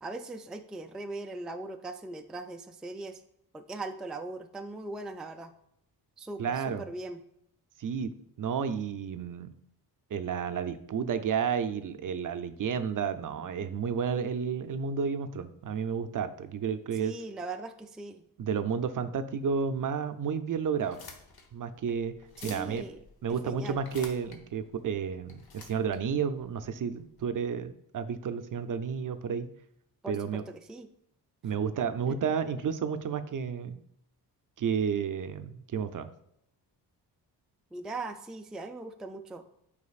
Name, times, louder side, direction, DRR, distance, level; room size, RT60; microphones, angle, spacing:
voice 1, 0.0-3.2 3.5-5.5 6.2-7.2 16.9-18.2 22.4-23.0 23.3-23.8 30.0-30.9 32.1-32.2 37.7-39.4, right 2 dB, ahead, 5 dB, 0.3 m, -40 dB
voice 2, 6.4-6.9 7.8-8.1 8.4-9.5 10.1-17.1 18.4-21.0 21.5-22.1 22.4-22.8 23.2-29.5 30.1-30.4 31.4-33.8 34.6-36.1, right 7 dB, 50° right, 10 dB, 0.5 m, -31 dB
sound 1, 20.8-27.2, left 4 dB, 65° left, 1.0 m, -51 dB
8.2 x 4.9 x 2.4 m, 0.75 s
cardioid pair, 80°, 40 cm